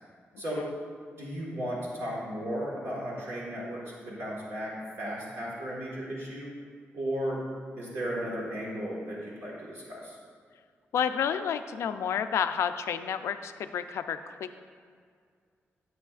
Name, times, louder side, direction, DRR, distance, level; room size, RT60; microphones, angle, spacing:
voice 1, 0.3-0.7 10.9-14.5, left 8 dB, 85° left, 9 dB, 0.4 m, -30 dB
voice 2, 1.2-6.5 6.9-7.4 7.8-10.2, equal, 65° right, -5 dB, 1.6 m, -35 dB
10.5 x 8.0 x 2.5 m, 2.1 s
wide cardioid pair, 155°, 5 cm